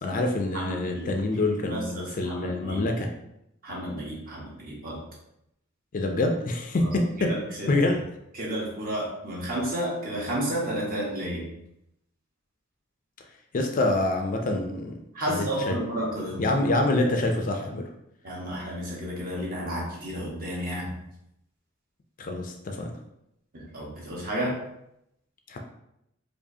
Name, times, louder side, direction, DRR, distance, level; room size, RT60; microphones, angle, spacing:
voice 1, 0.0-3.1 5.9-7.4 7.7-7.9 13.5-15.0 15.3-15.8 16.4-17.9 22.2-22.9 25.5-25.6, left 2 dB, 40° left, 3 dB, 0.4 m, -26 dB
voice 2, 0.5-1.1 1.7-2.8 3.6-5.0 6.8-6.9 7.2-7.7 8.3-11.5 15.1-16.4 18.2-21.0 23.5-24.6, equal, 45° right, -4 dB, 1.2 m, -31 dB
4.7 x 2.5 x 2.7 m, 0.81 s
head